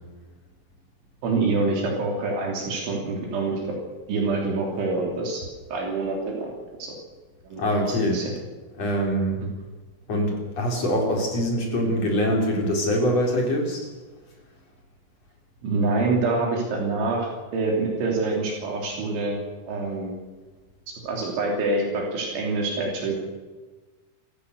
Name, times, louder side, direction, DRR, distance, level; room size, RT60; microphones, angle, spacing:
voice 1, 1.2-3.8 4.1-5.4 5.7-6.5 6.8-7.0 7.5-7.6 8.1-8.3 15.6-19.4 19.7-20.2 21.0-23.2, right 3 dB, 70° right, 0 dB, 5.5 m, -26 dB
voice 2, 7.6-8.2 8.8-9.4 10.1-13.9, equal, 35° left, 0 dB, 4.6 m, -24 dB
28.0 x 14.5 x 6.7 m, 1.3 s
omnidirectional pair, 5.6 m